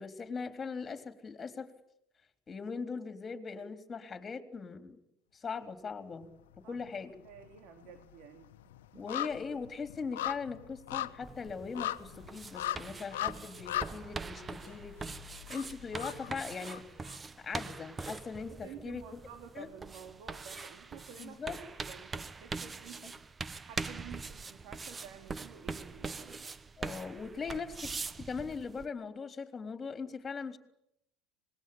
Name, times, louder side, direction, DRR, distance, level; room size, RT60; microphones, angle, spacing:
voice 1, 0.0-1.7 2.5-5.0 5.3-6.3 6.7-7.1 8.9-15.0 15.5-16.8 17.4-19.2 19.5-19.7 21.2-21.6 26.8-27.7 28.2-30.6, left 5 dB, 25° left, 8 dB, 3.7 m, -40 dB
sound 1, 6.1-6.9 7.2-17.2 17.5-17.6, left 13 dB, 80° left, 1.2 m, -40 dB
voice 2, 7.2-9.0 18.6-23.2 23.6-26.5 27.4-28.0, right 8 dB, 65° right, 6 dB, 3.1 m, -51 dB
sound 2, 11.2-28.9, right 4 dB, 25° right, 1.1 m, -43 dB
26.0 x 21.0 x 8.8 m, 0.78 s
hypercardioid pair, 75°, 0 cm